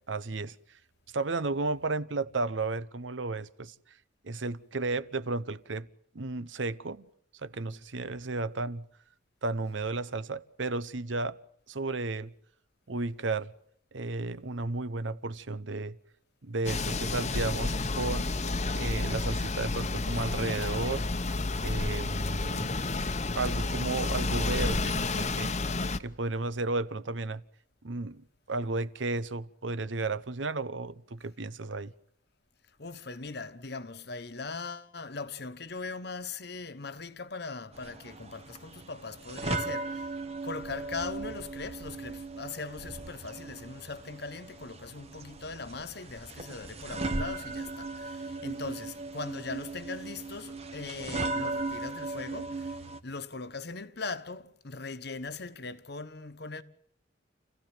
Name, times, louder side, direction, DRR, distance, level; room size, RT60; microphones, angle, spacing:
voice 1, 0.1-0.5 1.1-3.7 4.2-5.9 6.1-7.1 7.3-8.8 9.4-11.4 11.7-12.3 12.9-13.5 13.9-16.0 16.4-18.3 18.7-21.0 21.6-22.7 23.4-25.5 26.0-27.4 27.8-28.2 28.5-31.9, right 3 dB, 75° right, 0.9 m, -33 dB
sound 1, 16.7-26.0, left 3 dB, 35° left, 0.9 m, -30 dB
voice 2, 32.8-40.1 40.4-56.6, left 4 dB, 55° left, 1.2 m, -40 dB
sound 2, 37.7-53.0, right 3 dB, 35° right, 1.3 m, -37 dB
29.0 x 15.0 x 9.0 m
head